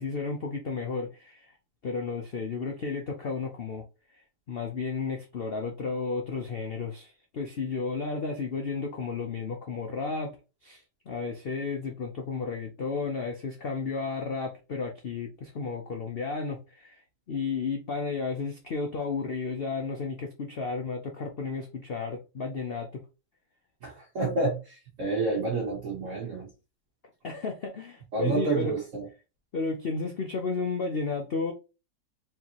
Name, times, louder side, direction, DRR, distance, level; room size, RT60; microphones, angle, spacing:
voice 1, 0.0-1.5 1.8-3.8 4.5-10.4 10.6-17.0 17.3-23.0 27.2-28.7 29.5-31.5, left 4 dB, 80° left, 0.5 m, -33 dB
voice 2, 23.8-26.5 28.1-29.1, right 3 dB, 50° right, 1.4 m, -29 dB
4.6 x 3.3 x 2.9 m
omnidirectional pair, 2.0 m